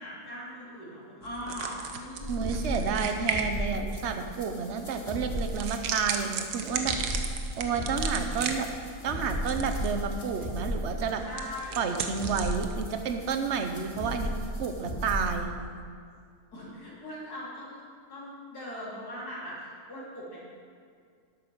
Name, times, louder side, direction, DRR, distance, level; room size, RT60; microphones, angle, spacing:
voice 1, 0.0-2.7 11.2-11.8 16.5-17.8 18.1-20.4, left 1 dB, 75° left, -7 dB, 3.9 m, -40 dB
sound 1, 1.2-14.1, right 5 dB, 80° right, 1.4 m, -37 dB
sound 2, 2.2-15.4, equal, 25° left, 1.7 m, -35 dB
voice 2, 2.3-7.0 7.6-8.7 9.0-11.2 11.8-14.3 14.6-15.5, right 6 dB, 50° right, 6 dB, 1.1 m, -30 dB
11.5 x 8.7 x 6.3 m, 2.2 s
omnidirectional pair, 1.7 m